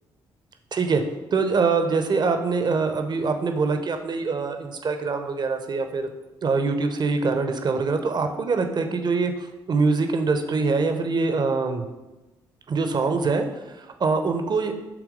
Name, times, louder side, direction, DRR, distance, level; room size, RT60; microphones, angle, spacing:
voice 1, 0.7-1.0 1.3-6.1 6.4-11.8 12.7-14.7, right 4 dB, 40° right, 6 dB, 0.8 m, -24 dB
6.1 x 3.5 x 5.1 m, 1.0 s
figure-of-eight pair, 45°, 12 cm